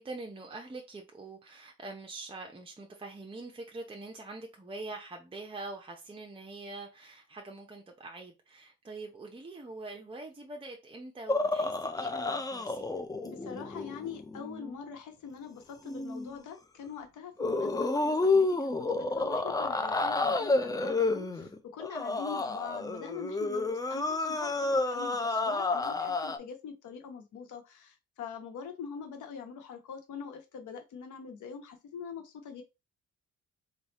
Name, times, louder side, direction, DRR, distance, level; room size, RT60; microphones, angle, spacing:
voice 1, 0.0-13.0, right 2 dB, 20° right, 0.8 m, -44 dB
sound 1, 11.3-14.7 15.9-16.3 17.4-26.4, left 3 dB, 10° left, 0.5 m, -30 dB
voice 2, 13.2-32.6, left 6 dB, 75° left, 1.1 m, -43 dB
3.3 x 2.4 x 4.1 m
cardioid pair, 90°, 30 cm